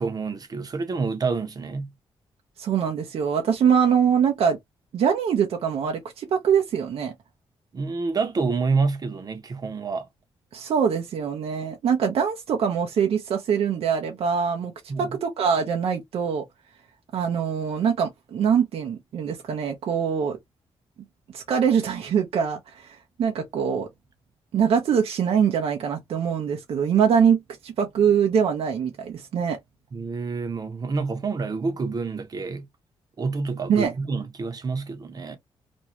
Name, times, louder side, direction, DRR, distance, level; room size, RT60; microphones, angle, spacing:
voice 1, 0.0-1.9 7.7-10.1 14.9-15.1 29.9-32.7 33.2-35.4, right 4 dB, 40° right, 0.8 m, -28 dB
voice 2, 2.6-4.6 4.9-7.1 10.5-14.7 15.0-16.4 17.1-20.4 21.3-23.9 24.5-29.6 33.7-33.9, right 7 dB, 70° right, 0.6 m, -23 dB
2.6 x 2.3 x 2.9 m
cardioid pair, 100°, 10 cm